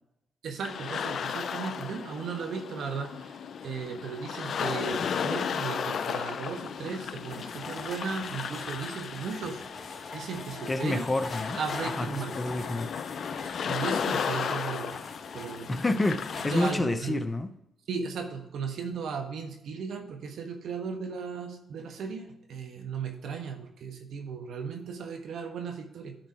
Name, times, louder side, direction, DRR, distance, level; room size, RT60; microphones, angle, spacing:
voice 1, 0.4-3.4 3.6-9.6 9.9-11.1 11.6-12.3 13.7-15.0 15.3-15.7 16.5-17.2 17.9-26.2, right 5 dB, 75° right, 1.2 m, -36 dB
sound 1, 0.6-16.7, left 7 dB, 65° left, 0.4 m, -35 dB
sound 2, 7.3-16.8, left 4 dB, 50° left, 1.2 m, -43 dB
voice 2, 10.7-11.6 11.8-12.1 12.4-12.9 15.7-17.5, left 2 dB, 25° left, 0.7 m, -28 dB
10.5 x 4.0 x 4.8 m
supercardioid pair, 55°, 0 cm